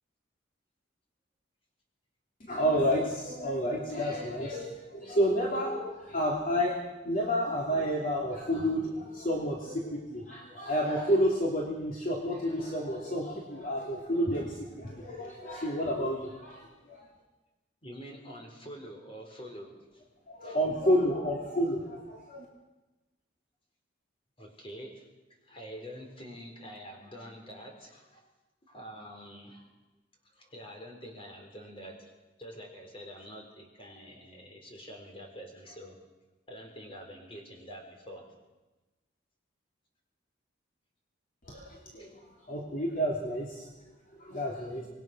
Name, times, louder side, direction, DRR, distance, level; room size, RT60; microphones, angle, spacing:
voice 1, 2.5-6.8 7.0-17.0 20.3-22.4 41.5-43.7 44.2-44.9, equal, 45° left, -2 dB, 3.2 m, -30 dB
voice 2, 17.8-20.0 20.4-20.6 24.4-25.1 25.4-28.3 28.7-29.7 30.3-32.1 32.4-36.0 36.5-38.2 42.0-42.1, equal, 30° left, 2 dB, 4.5 m, -46 dB
26.0 x 21.0 x 6.3 m, 1.1 s
head